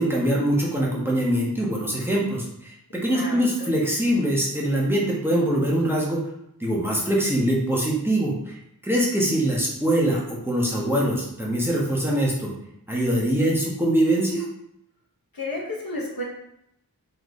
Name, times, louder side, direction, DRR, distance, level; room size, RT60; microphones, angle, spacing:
voice 1, 0.0-6.2 6.6-8.5 8.8-12.5 12.9-14.4, right 1 dB, 5° right, -4 dB, 1.1 m, -23 dB
voice 2, 3.1-3.7 15.3-16.2, left 2 dB, 65° left, -2 dB, 1.1 m, -32 dB
3.9 x 3.2 x 3.1 m, 0.79 s
wide cardioid pair, 50°, 38 cm